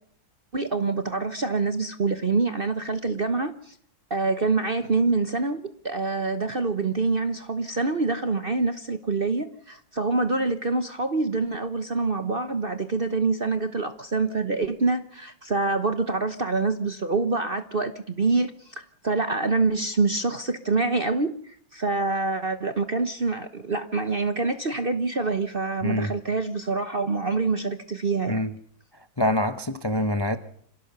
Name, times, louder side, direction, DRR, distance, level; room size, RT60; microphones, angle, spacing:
voice 1, 0.5-3.7 4.1-28.4, right 3 dB, 40° right, 0.9 m, -26 dB
voice 2, 25.8-26.1 28.3-28.5 29.2-30.4, left 1 dB, 25° left, 0.5 m, -25 dB
26.5 x 17.0 x 6.8 m
omnidirectional pair, 2.2 m